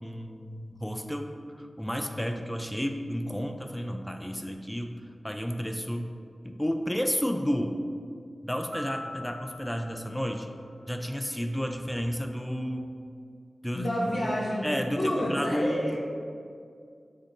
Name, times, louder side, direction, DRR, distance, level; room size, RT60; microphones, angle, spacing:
voice 1, 0.0-4.9 5.2-6.1 6.4-7.8 8.4-10.5 10.9-12.8 13.6-13.9 14.6-16.0, equal, 10° left, 4 dB, 0.3 m, -31 dB
sound 1, 8.7-11.2, left 1 dB, 30° right, 0.6 m, -43 dB
voice 2, 13.7-14.7 14.9-16.0, equal, 75° left, -5 dB, 0.9 m, -29 dB
5.2 x 2.5 x 3.8 m, 2.3 s
cardioid pair, 45°, 0 cm